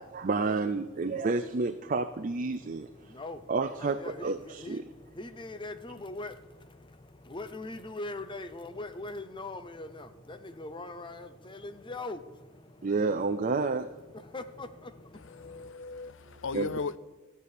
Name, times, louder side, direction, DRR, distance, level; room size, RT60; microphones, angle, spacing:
voice 1, 0.0-3.1 3.5-4.8 12.8-13.9 16.5-16.7, right 3 dB, 40° right, 0.5 m, -30 dB
voice 2, 2.5-12.9 13.9-15.7, left 2 dB, 25° left, 0.8 m, -42 dB
voice 3, 15.1-17.0, left 4 dB, 65° left, 0.6 m, -37 dB
14.0 x 6.9 x 9.7 m
head